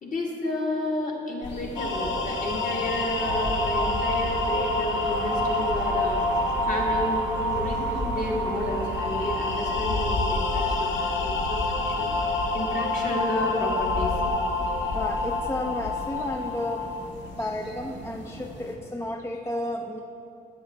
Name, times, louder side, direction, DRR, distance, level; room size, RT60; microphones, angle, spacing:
voice 1, 0.0-6.2 6.6-10.9 11.2-14.1, left 1 dB, 40° left, -2 dB, 1.7 m, -31 dB
sound 1, 1.4-18.7, left 1 dB, 60° left, 1.4 m, -36 dB
sound 2, 1.8-17.1, left 2 dB, 80° left, 0.8 m, -28 dB
sound 3, 3.2-9.7, right 7 dB, 65° right, 0.5 m, -37 dB
voice 2, 14.9-16.9 17.4-20.0, left 1 dB, 15° left, 3 dB, 0.4 m, -32 dB
9.3 x 8.1 x 3.3 m, 2.7 s
cardioid pair, 90°, 20 cm